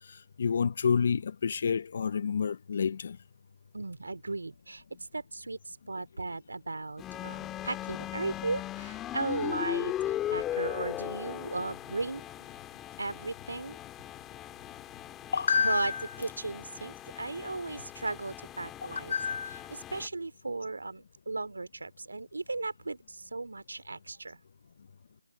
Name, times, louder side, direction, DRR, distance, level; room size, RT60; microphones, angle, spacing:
voice 1, 0.1-3.2 15.3-16.0 19.1-19.6, left 6 dB, 40° left, 0.6 m, -29 dB
voice 2, 3.7-4.8 5.1-12.3 13.0-13.8 15.6-15.9 16.2-19.1 19.7-24.4, right 3 dB, 80° right, 2.7 m, -36 dB
sound 1, 7.0-20.1, left 12 dB, 10° left, 3.2 m, -38 dB
figure-of-eight pair, 170°, 0 cm